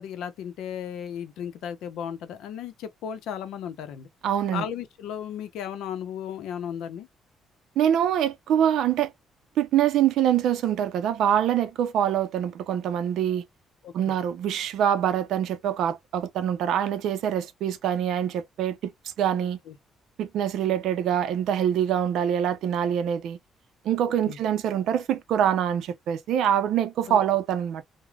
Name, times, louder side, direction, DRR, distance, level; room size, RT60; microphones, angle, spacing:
voice 1, 0.0-4.1 4.5-7.1 13.8-13.9 19.4-19.8 24.3-24.4 27.1-27.2, left 9 dB, 85° left, 0.6 m, -35 dB
voice 2, 4.2-4.6 7.8-9.1 9.6-13.4 13.9-18.9 19.2-19.6 20.2-23.4 23.8-27.9, right 10 dB, 65° right, 0.5 m, -24 dB
3.2 x 2.1 x 2.3 m
cardioid pair, 175°, 0 cm